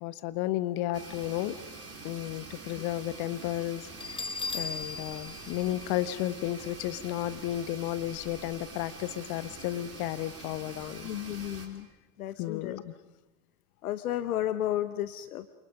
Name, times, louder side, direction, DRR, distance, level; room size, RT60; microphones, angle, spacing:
voice 1, 0.0-1.6 2.0-11.1 12.4-12.9, left 14 dB, 55° left, 14 dB, 1.3 m, -33 dB
sound 1, 0.9-11.7, right 3 dB, 35° right, 4.9 m, -45 dB
Bell, 4.0-6.7, left 4 dB, 10° left, 1.2 m, -38 dB
voice 2, 11.0-11.9 12.2-12.8 13.8-15.6, left 12 dB, 75° left, 13 dB, 1.0 m, -33 dB
28.5 x 27.5 x 5.3 m, 1.1 s
figure-of-eight pair, 75°, 44 cm